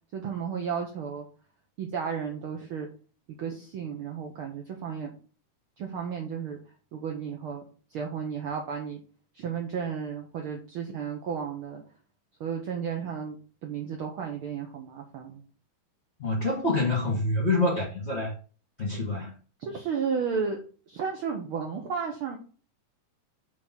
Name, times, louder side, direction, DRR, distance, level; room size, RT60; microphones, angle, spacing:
voice 1, 0.1-1.3 1.8-2.9 3.4-5.1 5.8-6.6 6.9-7.6 7.9-9.0 9.3-11.8 12.4-15.4 19.6-20.6 20.9-22.4, right 6 dB, 90° right, 1.2 m, -33 dB
voice 2, 16.2-18.3 18.8-19.3, left 2 dB, 35° left, 1.0 m, -26 dB
6.7 x 3.7 x 5.9 m
omnidirectional pair, 3.7 m